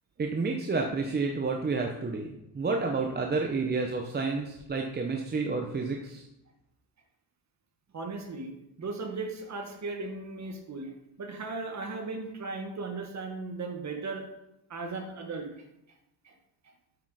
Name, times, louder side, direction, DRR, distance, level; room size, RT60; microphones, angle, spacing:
voice 1, 0.2-6.3, right 4 dB, 25° right, 2 dB, 0.7 m, -30 dB
voice 2, 7.9-10.9 11.2-14.3 14.7-15.6 16.2-16.3, right 3 dB, 40° right, 3 dB, 1.5 m, -37 dB
8.5 x 6.1 x 4.9 m, 0.86 s
cardioid pair, 155°, 41 cm